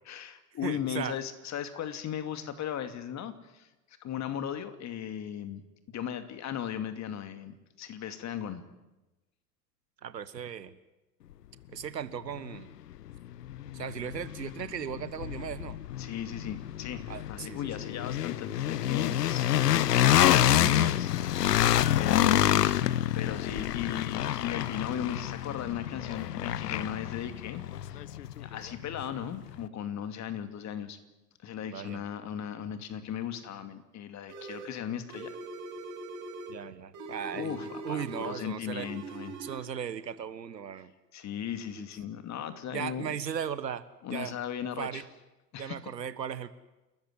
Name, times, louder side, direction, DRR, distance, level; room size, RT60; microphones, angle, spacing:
voice 1, 0.1-3.7 4.0-5.6 5.9-8.6 16.0-21.1 22.0-22.6 23.1-28.0 28.4-31.0 31.4-35.3 37.3-39.3 41.1-43.2 44.0-45.0 45.5-45.8, left 9 dB, 35° left, 9 dB, 2.6 m, -37 dB
voice 2, 0.6-1.2 10.0-10.8 11.7-12.7 13.7-15.8 17.1-17.6 20.4-20.9 22.1-22.6 31.6-32.0 36.5-38.9 39.4-40.9 41.8-41.9 42.7-43.8 44.1-44.3 44.8-45.0 45.6-46.5, right 8 dB, 80° right, 15 dB, 1.4 m, -37 dB
sound 1, 12.5-12.6 13.1-29.1, left 12 dB, 70° left, 1.0 m, -27 dB
sound 2, 34.3-34.8 35.1-36.6 36.9-38.5 38.8-39.6, right 3 dB, 40° right, 5.8 m, -42 dB
29.5 x 14.5 x 9.9 m, 1.0 s
figure-of-eight pair, 85°, 49 cm